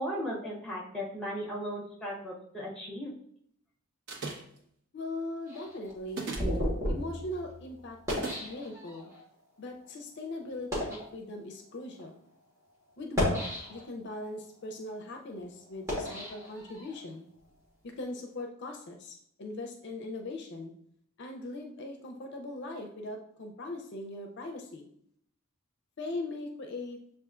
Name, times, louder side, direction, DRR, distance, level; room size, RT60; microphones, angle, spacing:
voice 1, 0.0-3.1, equal, 5° left, -2 dB, 1.0 m, -36 dB
sound 1, 4.1-4.6 6.1-6.6 8.1-8.4, right 3 dB, 55° right, 0.9 m, -37 dB
voice 2, 4.9-6.3 6.9-9.1 9.6-12.2 13.0-17.3 17.8-20.7 21.2-24.9 26.0-27.0, left 2 dB, 55° left, 3 dB, 0.5 m, -40 dB
sound 2, 5.5-9.2 9.9-10.0 10.5-11.1 11.9-12.0 13.0-14.1 14.6-17.1, left 1 dB, 15° right, 1.3 m, -34 dB
7.0 x 2.5 x 2.4 m, 0.68 s
head